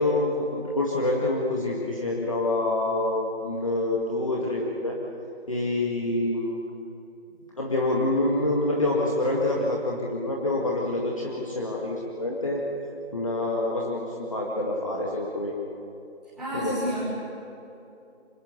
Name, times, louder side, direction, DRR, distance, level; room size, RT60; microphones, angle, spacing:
voice 1, 0.0-5.0 5.5-6.6 7.6-12.6 13.1-15.5 16.5-16.8, left 2 dB, 30° left, -2 dB, 2.0 m, -26 dB
voice 2, 16.4-17.0, equal, ahead, -15 dB, 5.4 m, -29 dB
29.5 x 25.5 x 6.8 m, 2.9 s
figure-of-eight pair, 170°, 34 cm